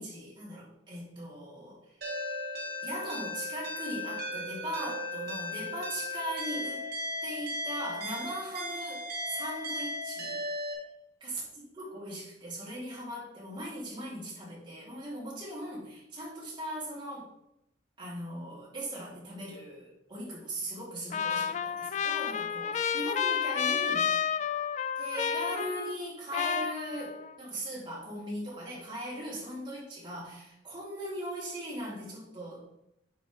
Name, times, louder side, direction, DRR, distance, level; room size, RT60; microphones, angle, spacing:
voice 1, 0.0-2.0 2.8-6.8 7.2-10.4 11.2-11.4 11.8-17.3 18.0-24.1 24.9-32.6, right 1 dB, 25° right, -6 dB, 3.4 m, -39 dB
sound 1, 2.0-10.7, left 1 dB, 60° right, 2.5 m, -36 dB
Trumpet, 21.1-26.1 26.3-27.3, left 7 dB, 40° left, 0.4 m, -31 dB
9.4 x 4.5 x 4.7 m, 0.83 s
head